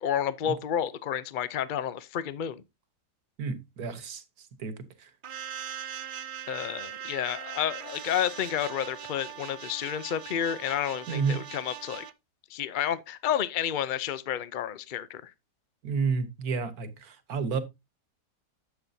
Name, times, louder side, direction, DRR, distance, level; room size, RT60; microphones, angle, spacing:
voice 1, 0.0-2.6 6.5-12.1 12.5-15.3, left 9 dB, 85° left, 0.4 m, -30 dB
voice 2, 3.4-5.1 11.1-11.4 15.8-17.6, right 5 dB, 65° right, 1.6 m, -31 dB
sound 1, 5.2-12.1, right 10 dB, 85° right, 0.4 m, -40 dB
11.5 x 7.8 x 2.7 m
omnidirectional pair, 1.8 m